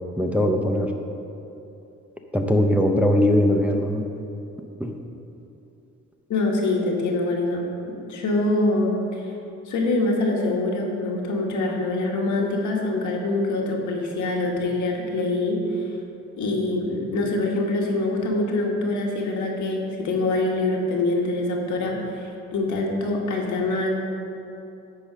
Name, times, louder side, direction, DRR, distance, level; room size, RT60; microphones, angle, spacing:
voice 1, 0.2-0.9 2.3-4.1 4.8-5.0, left 1 dB, 5° right, 2 dB, 0.6 m, -20 dB
voice 2, 6.3-7.6 8.1-9.3 9.7-15.9 16.4-23.9, left 2 dB, 70° left, 0 dB, 1.5 m, -24 dB
10.0 x 4.2 x 6.2 m, 2.8 s
cardioid pair, 90°, 30 cm